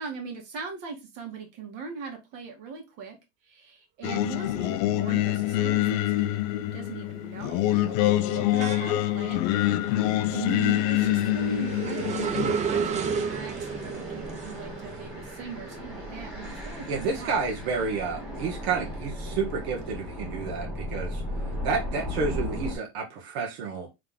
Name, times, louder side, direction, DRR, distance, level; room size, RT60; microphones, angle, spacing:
voice 1, 0.0-3.2 3.4-9.4 9.7-10.0 10.3-17.4, right 5 dB, 60° right, 1.8 m, -39 dB
Singing, 4.0-12.5, left 14 dB, 60° left, 0.5 m, -25 dB
sound 1, 5.7-6.1 6.5-17.7 18.1-19.9, right 6 dB, 25° right, 0.5 m, -34 dB
sound 2, 7.5-7.7 8.3-22.8, left 1 dB, 5° right, 1.9 m, -38 dB
voice 2, 16.9-21.2 21.6-23.9, right 5 dB, 80° right, 1.3 m, -30 dB
3.7 x 3.3 x 3.6 m
supercardioid pair, 150°, 31 cm